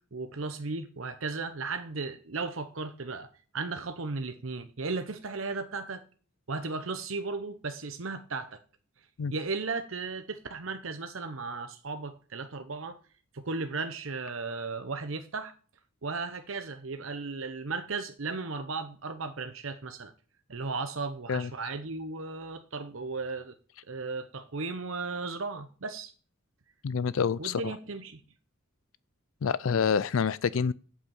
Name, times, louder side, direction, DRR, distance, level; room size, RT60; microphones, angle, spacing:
voice 1, 0.1-3.3 3.5-6.0 6.5-8.6 9.3-13.0 13.3-15.5 16.0-20.1 20.5-23.5 23.9-26.1 27.4-28.2, right 4 dB, 65° right, 0.9 m, -35 dB
voice 2, 26.8-27.7 29.4-30.7, left 6 dB, 70° left, 0.4 m, -27 dB
8.6 x 8.4 x 7.1 m
head